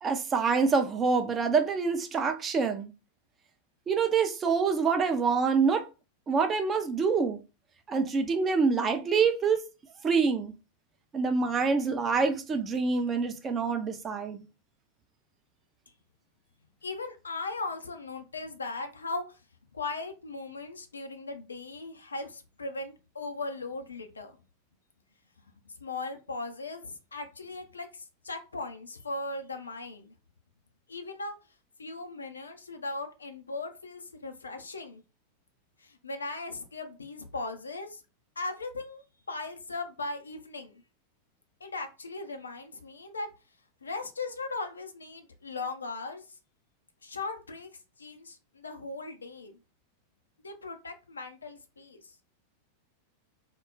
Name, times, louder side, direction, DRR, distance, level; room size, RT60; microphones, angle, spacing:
voice 1, 0.0-2.9 3.9-5.9 6.3-7.4 7.9-9.6 10.0-10.5 11.1-14.4, right 5 dB, 25° right, 0.4 m, -26 dB
voice 2, 16.8-19.4 19.7-24.4 25.6-30.1 30.9-31.4 31.8-35.0 35.8-38.0 38.4-40.8 41.6-43.3 43.8-46.4 47.0-47.7 48.0-49.6 50.4-52.2, left 3 dB, 75° left, 0.5 m, -38 dB
2.2 x 2.0 x 3.7 m
figure-of-eight pair, 90°, 0 cm